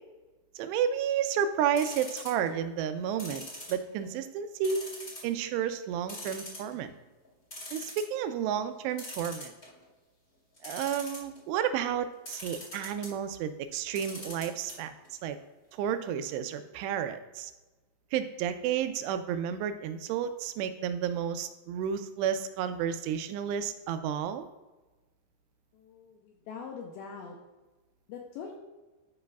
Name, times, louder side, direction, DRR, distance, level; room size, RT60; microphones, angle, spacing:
voice 1, 0.6-3.4 3.7-4.9 5.2-6.9 7.7-9.5 10.6-14.9 15.2-15.4 15.8-17.5 18.1-24.5, right 8 dB, 85° right, 10 dB, 2.7 m, -31 dB
sound 1, 1.8-2.5 3.2-4.2 4.6-5.3 5.7-5.8 6.1-6.9 7.2-7.3 7.5-8.1 9.0-9.9 10.6-11.4 12.3-13.1 13.9-14.7 15.0-15.1 15.4-15.5, left 1 dB, 40° left, 1.3 m, -42 dB
voice 2, 25.7-27.4 28.1-28.6, left 6 dB, 85° left, 1 dB, 2.2 m, -43 dB
12.0 x 5.6 x 2.3 m, 1.2 s
omnidirectional pair, 4.9 m